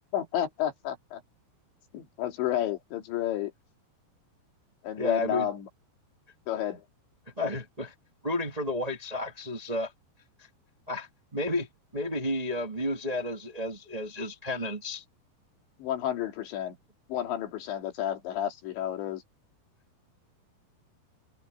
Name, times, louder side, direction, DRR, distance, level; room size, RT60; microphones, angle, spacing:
voice 1, 0.1-1.2 1.9-3.5 4.8-5.7 6.5-6.8 15.8-16.8 17.1-19.2, left 11 dB, 85° left, 4.8 m, -31 dB
voice 2, 5.0-5.5 7.4-7.9 8.2-9.9 10.9-11.7 11.9-15.0, left 1 dB, 20° right, 1.1 m, -32 dB
omnidirectional pair, 5.0 m